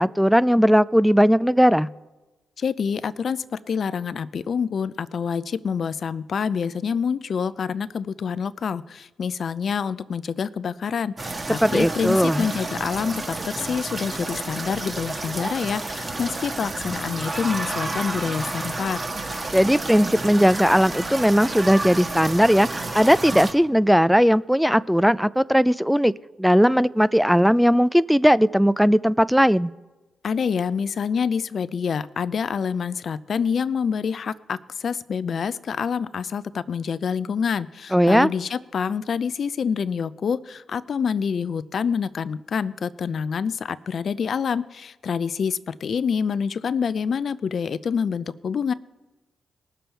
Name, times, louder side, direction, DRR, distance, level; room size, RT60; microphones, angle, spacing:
voice 1, 0.0-1.9 11.6-12.5 19.5-26.1 26.4-29.7 37.9-38.3, equal, ahead, 18 dB, 0.4 m, -18 dB
voice 2, 2.6-19.0 30.2-48.7, left 6 dB, 60° left, 16 dB, 0.5 m, -27 dB
sound 1, 11.2-23.5, right 2 dB, 35° right, 1.5 m, -31 dB
19.5 x 6.9 x 4.5 m, 1.1 s
supercardioid pair, 50°, 0 cm